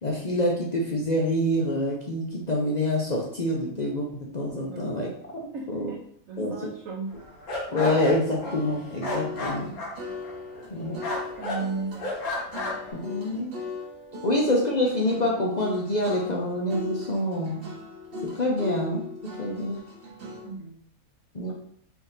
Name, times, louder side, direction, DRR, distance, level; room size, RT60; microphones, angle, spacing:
voice 1, 0.0-5.9 6.4-6.6 7.7-9.7 10.7-11.1 12.9-13.5 14.2-17.6 18.2-19.1 19.4-19.8 21.3-21.5, left 1 dB, 45° left, -2 dB, 0.5 m, -26 dB
voice 2, 5.5-6.0 6.3-7.2 10.8-12.2 20.4-20.8, right 4 dB, 65° right, -1 dB, 1.1 m, -36 dB
sound 1, 7.1-10.8 11.0-11.6 12.0-12.9, left 1 dB, 80° left, 1.5 m, -32 dB
sound 2, 8.4-20.5, left 2 dB, 45° right, 1.1 m, -39 dB
4.6 x 2.6 x 4.0 m, 0.63 s
omnidirectional pair, 1.5 m